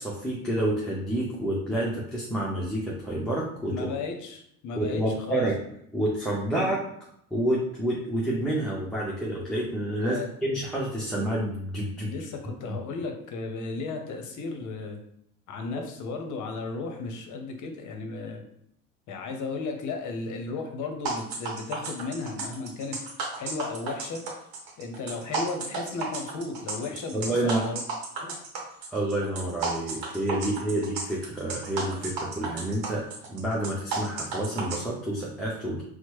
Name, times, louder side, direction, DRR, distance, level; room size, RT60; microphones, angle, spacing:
voice 1, 0.0-3.9 4.8-5.6 5.9-6.8 7.3-12.1 27.1-27.6 28.9-35.8, right 1 dB, ahead, -6 dB, 0.7 m, -29 dB
voice 2, 3.6-5.5 6.5-6.7 10.0-10.3 12.0-15.0 15.5-18.4 19.1-23.0 23.4-24.2 24.8-27.8 28.2-28.4 30.5-30.7, left 4 dB, 40° left, 4 dB, 0.8 m, -35 dB
sound 1, 21.1-34.8, right 4 dB, 50° right, 1.0 m, -33 dB
4.3 x 2.1 x 3.0 m, 0.70 s
hypercardioid pair, 65°, 45 cm